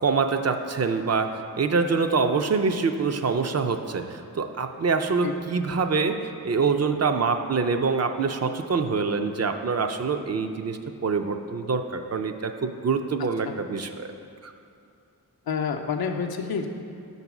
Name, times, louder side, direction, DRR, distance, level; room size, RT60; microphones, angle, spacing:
voice 1, 0.0-14.1 14.4-14.5, right 4 dB, 45° right, 6 dB, 0.4 m, -25 dB
voice 2, 15.5-16.7, left 6 dB, 80° left, 4 dB, 0.6 m, -28 dB
6.1 x 4.0 x 5.9 m, 2.5 s
wide cardioid pair, 65°, 36 cm